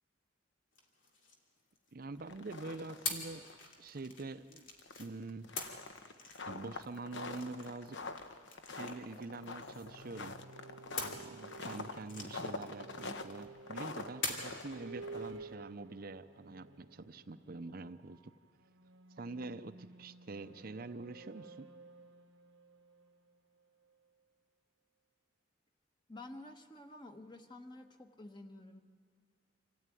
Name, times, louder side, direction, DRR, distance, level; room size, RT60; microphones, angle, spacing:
sound 1, 0.7-2.2 3.0-5.1 5.6-10.2 11.0-13.5 14.2-14.7, left 4 dB, 85° left, 2.8 m, -45 dB
voice 1, 1.9-3.5 3.8-4.7 5.0-5.5 6.5-8.0 8.7-10.4 11.0-18.3 19.2-21.7, right 3 dB, 50° right, 10 dB, 0.6 m, -45 dB
sound 2, 2.2-3.2 3.4-3.6 4.0-4.1 4.8-15.5, left 3 dB, 65° left, 1.0 m, -45 dB
sound 3, 9.4-24.1, right 3 dB, 85° right, 1.0 m, -54 dB
voice 2, 26.1-28.8, left 2 dB, 25° left, 6 dB, 1.2 m, -50 dB
26.0 x 14.5 x 9.1 m, 2.2 s
head